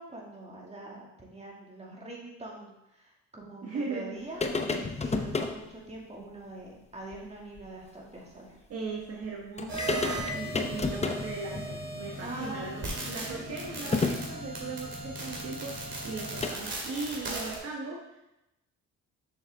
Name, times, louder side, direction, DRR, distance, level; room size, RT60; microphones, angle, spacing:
voice 1, 0.0-8.6 12.2-12.9 13.3-14.1, right 2 dB, 20° right, -3 dB, 2.4 m, -44 dB
voice 2, 3.6-4.1 8.7-12.7 13.0-18.2, right 4 dB, 55° right, -2 dB, 1.4 m, -38 dB
sound 1, 4.4-5.6 7.1-7.2 7.6-7.7 9.2-9.3 9.6-16.5, left 3 dB, 20° left, 0.8 m, -33 dB
sound 2, 9.7-17.6, right 3 dB, 40° right, 2.7 m, -38 dB
7.0 x 6.9 x 3.7 m, 0.89 s
cardioid pair, 90°, 30 cm